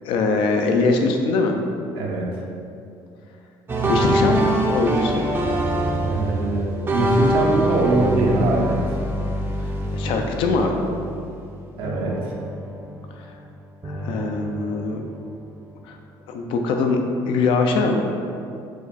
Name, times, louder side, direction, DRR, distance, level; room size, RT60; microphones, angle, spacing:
voice 1, 0.0-1.6 3.9-5.3 9.9-10.8 13.2-13.3 13.8-15.0 15.8-16.0 16.3-18.0, left 3 dB, 80° left, 3 dB, 0.5 m, -22 dB
voice 2, 2.0-2.3 6.0-9.0 11.8-12.4, right 2 dB, 70° right, -2 dB, 0.8 m, -22 dB
sound 1, 3.7-11.6 11.8-13.4 13.8-15.4, right 1 dB, 25° right, 0.5 m, -25 dB
4.8 x 2.2 x 4.1 m, 2.5 s
cardioid pair, 105°, 9 cm